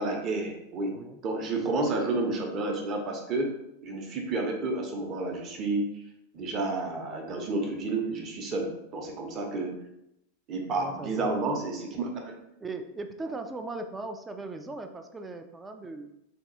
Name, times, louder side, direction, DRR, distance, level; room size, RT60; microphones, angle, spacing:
voice 1, 0.0-1.0 1.2-3.5 3.8-5.9 6.3-9.7 10.5-12.3, right 2 dB, 35° right, 2 dB, 0.8 m, -30 dB
voice 2, 10.7-11.3 12.6-16.1, right 3 dB, 15° right, 6 dB, 0.3 m, -38 dB
3.5 x 2.3 x 4.0 m, 0.82 s
figure-of-eight pair, 90°, 0 cm